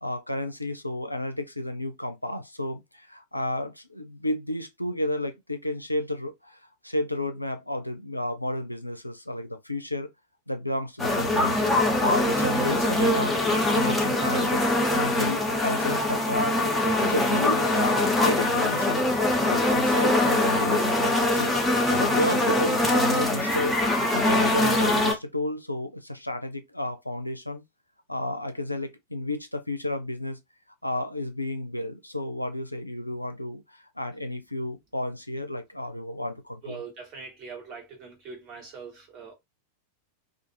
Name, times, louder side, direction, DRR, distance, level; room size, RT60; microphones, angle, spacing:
voice 1, 0.0-10.1 10.5-11.6 12.0-13.4 13.7-19.1 19.5-23.8 24.1-27.6 28.1-30.4 30.8-36.8, left 1 dB, 85° left, 0.4 m, -32 dB
sound 1, 11.0-25.1, left 1 dB, 5° left, 0.8 m, -23 dB
voice 2, 36.6-39.3, right 5 dB, 40° right, 1.2 m, -42 dB
2.5 x 2.4 x 2.8 m
figure-of-eight pair, 90°, 0 cm